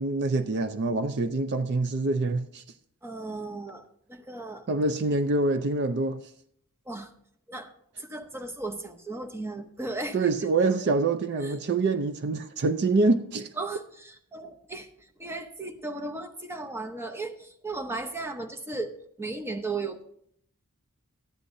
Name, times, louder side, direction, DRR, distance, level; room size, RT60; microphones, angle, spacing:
voice 1, 0.0-2.6 4.7-6.2 10.1-13.5, right 3 dB, 50° right, 0.5 m, -25 dB
voice 2, 3.0-4.7 6.9-7.1 7.5-7.7 8.0-10.2 11.4-11.5 13.6-14.9 15.2-20.0, right 3 dB, 10° right, 0.8 m, -36 dB
13.0 x 9.8 x 2.6 m
head